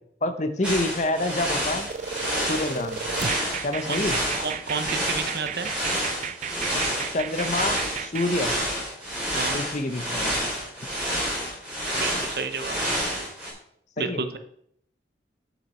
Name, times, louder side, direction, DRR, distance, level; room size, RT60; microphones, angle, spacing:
voice 1, 0.2-1.9 2.4-3.0 3.6-4.2 7.1-8.5 9.5-10.5 14.0-14.2, left 2 dB, 40° left, 9 dB, 0.8 m, -27 dB
sound 1, 0.6-13.5, equal, 5° right, 3.4 m, -29 dB
sound 2, 1.9-8.3, right 8 dB, 40° right, 0.3 m, -34 dB
voice 2, 4.4-5.7 9.3-9.6 11.9-12.9 14.0-14.4, right 5 dB, 60° right, 9 dB, 0.8 m, -31 dB
8.5 x 7.0 x 4.3 m, 0.69 s
head